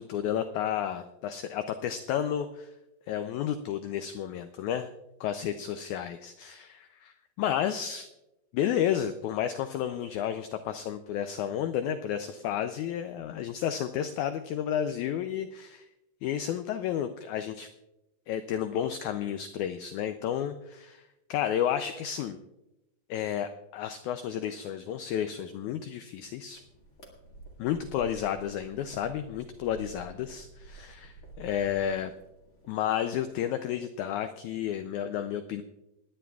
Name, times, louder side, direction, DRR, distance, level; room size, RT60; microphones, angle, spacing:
voice 1, 0.0-2.7 3.1-4.9 5.2-8.1 8.5-15.9 16.2-17.7 18.3-21.0 21.3-22.4 23.1-26.6 27.6-32.1 32.7-35.6, left 10 dB, 85° left, 9 dB, 1.7 m, -31 dB
sound 1, 26.5-33.5, right 2 dB, 30° left, 1.8 m, -50 dB
28.5 x 10.0 x 2.3 m, 0.95 s
omnidirectional pair, 4.0 m